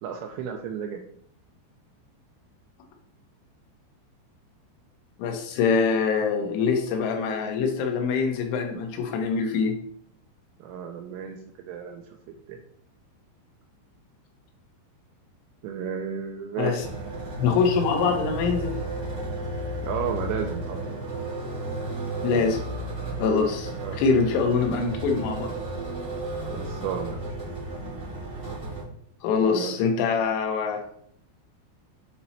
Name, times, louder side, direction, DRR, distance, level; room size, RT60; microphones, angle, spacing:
voice 1, 0.0-1.0 10.6-12.2 12.5-12.6 15.6-16.9 19.8-20.8 23.8-24.0 26.5-27.2 29.4-29.8, right 7 dB, 85° right, 3 dB, 2.5 m, -33 dB
voice 2, 5.2-9.8 16.6-16.8 17.4-18.8 22.2-22.6 23.2-25.5 29.2-30.9, left 5 dB, 85° left, 4 dB, 3.4 m, -24 dB
sound 1, 16.8-28.8, right 2 dB, 45° right, 1.0 m, -33 dB
8.2 x 2.9 x 4.2 m, 0.64 s
omnidirectional pair, 5.5 m